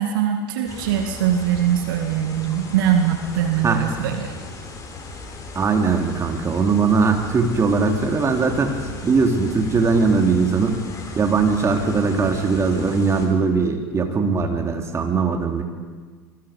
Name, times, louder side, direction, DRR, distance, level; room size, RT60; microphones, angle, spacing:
voice 1, 0.0-4.4, right 9 dB, 60° right, 4 dB, 2.2 m, -22 dB
sound 1, 0.7-13.3, left 3 dB, 25° left, 4.6 m, -36 dB
voice 2, 5.5-8.8 9.0-10.8 11.2-15.6, right 4 dB, 25° right, 3 dB, 3.4 m, -20 dB
26.5 x 22.5 x 5.3 m, 1.5 s
figure-of-eight pair, 80°, 12 cm